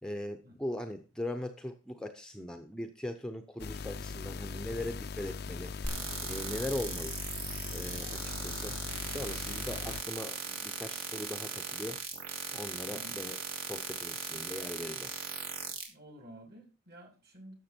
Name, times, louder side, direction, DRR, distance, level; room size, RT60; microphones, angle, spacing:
voice 1, 0.0-5.7 6.2-7.1 7.7-8.8 9.1-12.0 12.5-13.4 13.7-15.1, left 1 dB, 5° left, 0.7 m, -40 dB
sound 1, 3.6-10.0, left 5 dB, 50° left, 0.5 m, -40 dB
sound 2, 5.8-15.8, right 5 dB, 85° right, 2.8 m, -39 dB
voice 2, 12.9-13.2 15.9-17.5, equal, 50° right, 3.1 m, -52 dB
12.0 x 7.0 x 4.4 m
head